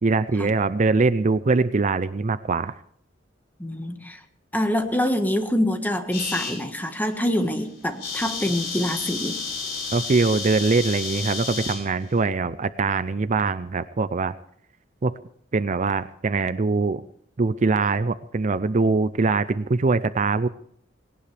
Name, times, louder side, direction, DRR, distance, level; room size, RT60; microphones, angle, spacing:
voice 1, 0.0-2.8 9.9-14.3 15.0-15.1 15.5-17.0 17.4-20.5, right 3 dB, 40° right, 14 dB, 0.5 m, -22 dB
voice 2, 3.6-4.2 4.5-9.4, left 1 dB, 10° left, 6 dB, 1.5 m, -25 dB
sound 1, 6.1-6.6 7.1-7.3 7.6-7.7 7.9-11.8, left 5 dB, 65° left, 6.4 m, -31 dB
19.0 x 18.0 x 3.4 m, 0.65 s
head